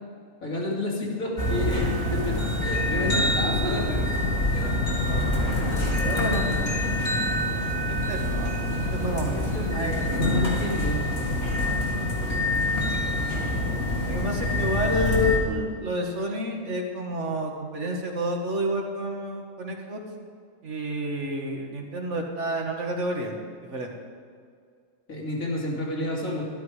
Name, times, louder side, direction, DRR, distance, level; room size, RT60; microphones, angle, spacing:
voice 1, 0.4-4.0 4.5-4.7 9.2-10.0 10.3-11.0 25.1-26.4, left 1 dB, 75° left, -3 dB, 2.9 m, -30 dB
sound 1, 1.4-15.4, left 1 dB, 45° left, 2.2 m, -26 dB
voice 2, 2.9-3.3 4.5-5.4 6.0-6.4 7.9-9.4 9.7-10.2 13.0-13.1 14.0-20.0 20.6-23.3 23.6-23.9, equal, 55° right, 1 dB, 1.8 m, -30 dB
13.0 x 11.5 x 4.8 m, 2.1 s
omnidirectional pair, 1.5 m